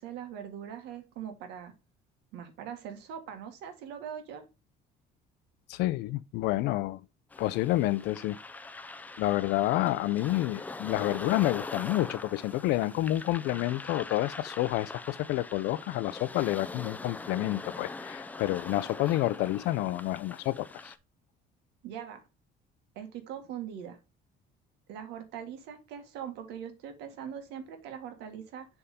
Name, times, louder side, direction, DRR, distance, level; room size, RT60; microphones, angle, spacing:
voice 1, 0.0-1.7 2.3-4.4 21.8-22.2 23.0-24.0 24.9-28.7, right 8 dB, 85° right, 1.8 m, -41 dB
voice 2, 5.7-7.0 7.4-8.4 9.2-20.9, left 16 dB, 75° left, 0.5 m, -29 dB
sound 1, 7.3-21.0, left 3 dB, 10° left, 0.4 m, -43 dB
7.0 x 3.6 x 5.1 m
cardioid pair, 160°, 17 cm